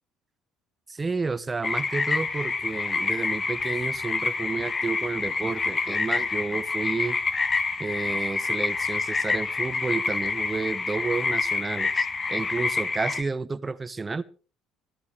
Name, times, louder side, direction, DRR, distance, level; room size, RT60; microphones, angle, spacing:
voice 1, 0.9-7.2 7.8-14.2, right 4 dB, 25° right, 17 dB, 0.7 m, -31 dB
sound 1, 1.6-13.2, left 4 dB, 35° left, 1.3 m, -27 dB
22.5 x 13.0 x 3.3 m, 0.36 s
hypercardioid pair, 60°, 0 cm